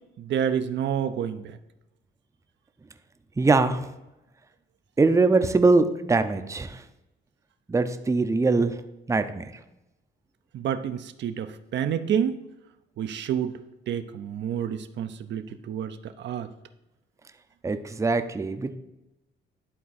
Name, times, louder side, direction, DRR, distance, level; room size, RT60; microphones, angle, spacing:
voice 1, 0.2-1.6 10.5-12.4 13.0-13.5 13.9-16.5, right 8 dB, 65° right, 9 dB, 0.5 m, -29 dB
voice 2, 3.4-3.9 5.0-6.8 7.7-8.8 9.1-9.4 17.6-18.8, right 3 dB, 15° right, 9 dB, 0.5 m, -22 dB
11.0 x 3.7 x 4.2 m, 0.95 s
cardioid pair, 90°, 20 cm